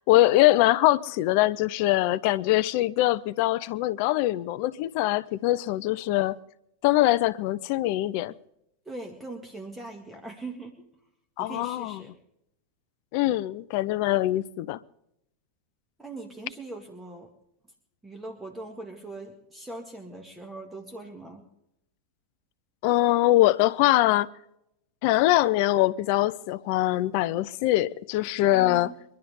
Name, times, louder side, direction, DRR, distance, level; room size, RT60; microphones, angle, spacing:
voice 1, 0.1-6.4 6.8-8.3 11.4-12.0 13.1-14.8 22.8-24.3 25.0-28.9, left 16 dB, 45° left, 0.5 m, -23 dB
voice 2, 8.9-10.9 11.4-12.1 16.0-17.3 18.0-21.4 28.5-29.0, right 2 dB, 10° right, 2.1 m, -41 dB
24.5 x 11.5 x 3.7 m
figure-of-eight pair, 90°, 0 cm